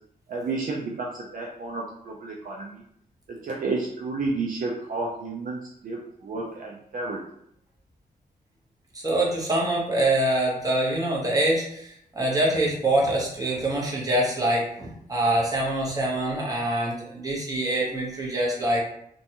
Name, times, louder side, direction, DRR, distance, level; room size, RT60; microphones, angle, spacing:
voice 1, 0.3-2.8 3.3-7.2, right 3 dB, 60° right, -2 dB, 0.5 m, -31 dB
voice 2, 8.9-18.8, right 1 dB, 20° right, -4 dB, 1.0 m, -25 dB
2.5 x 2.2 x 2.8 m, 0.70 s
cardioid pair, 80°, 16 cm